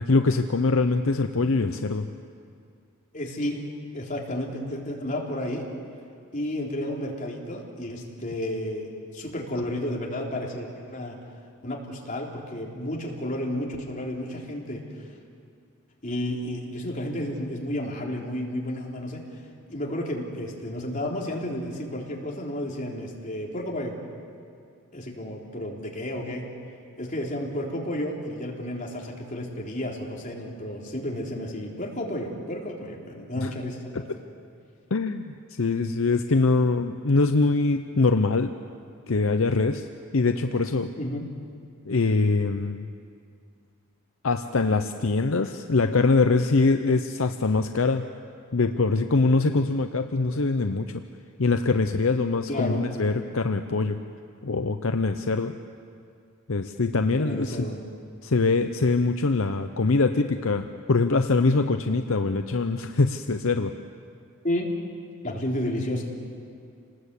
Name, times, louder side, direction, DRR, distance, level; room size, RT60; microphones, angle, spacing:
voice 1, 0.0-2.1 33.4-33.5 34.9-38.5 39.1-39.9 40.1-40.9 41.9-42.9 44.2-48.1 48.5-51.0 51.4-54.0 54.4-55.5 56.5-57.7 58.2-63.7, left 3 dB, 65° left, 7 dB, 0.7 m, -23 dB
voice 2, 3.1-3.6 3.9-5.7 6.3-11.2 11.6-15.1 16.0-19.2 19.7-24.0 24.9-26.5 27.0-34.1 41.0-41.3 52.5-52.8 57.2-57.8 64.4-64.7 65.2-66.0, left 1 dB, 35° left, -2 dB, 3.6 m, -32 dB
28.0 x 19.5 x 8.3 m, 2.3 s
head